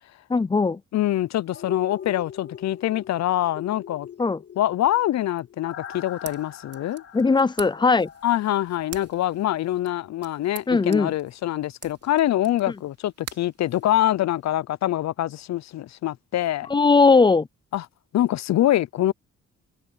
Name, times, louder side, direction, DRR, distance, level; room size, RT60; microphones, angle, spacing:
voice 1, 0.3-0.8 4.2-4.4 7.1-8.1 10.7-11.1 16.7-17.5, left 4 dB, 15° left, 0.4 m, -18 dB
voice 2, 0.9-4.1 4.6-7.0 8.2-16.7 17.7-17.9 18.1-19.1, left 13 dB, 70° left, 0.5 m, -24 dB
sound 1, 1.5-9.4 9.7-9.8, left 8 dB, 50° left, 2.0 m, -42 dB
sound 2, 5.9-14.5, right 7 dB, 55° right, 3.1 m, -46 dB
wide cardioid pair, 150°, 29 cm